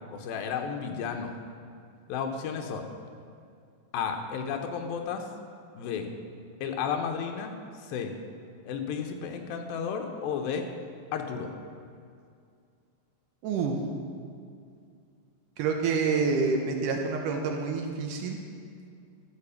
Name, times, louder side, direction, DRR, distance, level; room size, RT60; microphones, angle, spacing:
voice 1, 0.1-1.4 2.1-2.9 3.9-5.3 5.8-6.1 6.6-8.1 8.6-10.7 11.1-11.5, left 6 dB, 85° left, 4 dB, 2.6 m, -33 dB
voice 2, 13.4-13.8 15.6-18.4, right 4 dB, 75° right, 3 dB, 2.1 m, -27 dB
12.0 x 5.0 x 6.9 m, 2.3 s
omnidirectional pair, 4.1 m